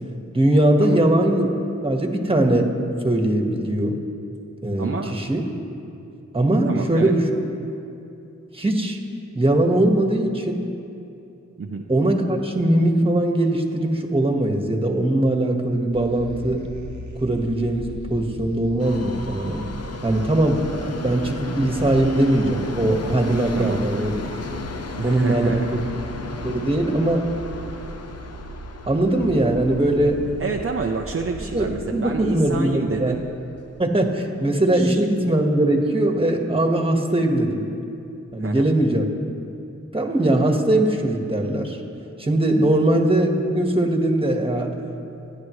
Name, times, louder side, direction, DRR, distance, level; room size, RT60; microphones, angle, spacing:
voice 1, 0.3-1.5 1.8-2.7 3.0-4.0 4.6-5.4 6.3-7.2 8.5-9.0 9.3-10.6 11.9-16.6 17.2-19.6 20.0-24.2 25.0-25.6 26.4-27.2 28.9-30.2 31.5-33.2 33.8-37.7 38.3-39.1 39.9-41.8 42.2-44.7, right 1 dB, 20° right, 2 dB, 1.6 m, -20 dB
voice 2, 4.8-5.2 6.7-7.1 11.6-11.9 23.6-23.8 25.0-25.8 30.4-33.2 34.7-35.0 38.4-38.7, right 4 dB, 50° right, 2 dB, 0.7 m, -28 dB
sound 1, 15.9-34.0, right 2 dB, 80° right, 1.1 m, -39 dB
Subway metro underground, 18.8-32.9 33.2-33.3 34.1-34.2 34.5-34.6 35.3-35.4, left 4 dB, 60° left, 0.8 m, -36 dB
26.0 x 10.5 x 3.2 m, 2.7 s
wide cardioid pair, 75°, 29 cm